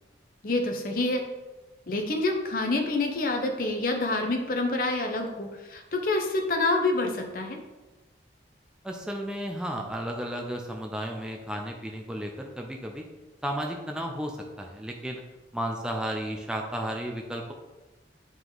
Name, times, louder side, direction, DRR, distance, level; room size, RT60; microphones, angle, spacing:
voice 1, 0.4-1.2 1.9-7.6, left 2 dB, 50° left, 3 dB, 0.9 m, -27 dB
voice 2, 8.8-13.0 13.4-15.2 15.5-17.5, equal, 5° right, 1 dB, 0.6 m, -33 dB
7.8 x 5.0 x 3.9 m, 1.1 s
head